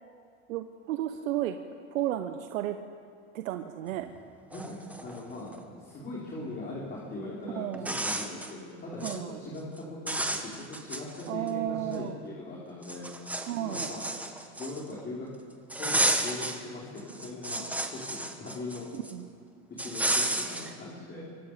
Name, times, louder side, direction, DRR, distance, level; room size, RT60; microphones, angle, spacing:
voice 1, 0.5-1.6 1.9-2.8 3.3-4.1 7.5-7.9 9.0-9.4 11.3-12.2 13.5-13.9 18.9-19.3, right 13 dB, 85° right, 7 dB, 1.1 m, -33 dB
sound 1, 4.2-4.3 4.5-5.6 7.1-7.2 7.7-8.5 8.9-9.2 9.6-9.8 10.1-11.5 11.9-12.0 12.8-15.0 15.7-16.6 17.0-19.1 19.8-20.7, right 1 dB, 5° right, 1.6 m, -32 dB
voice 2, 5.0-13.1 13.6-14.0 14.6-15.3 15.8-18.9 19.8-21.2, left 2 dB, 25° left, -5 dB, 4.8 m, -40 dB
24.5 x 24.0 x 5.1 m, 2.2 s
supercardioid pair, 120°, 39 cm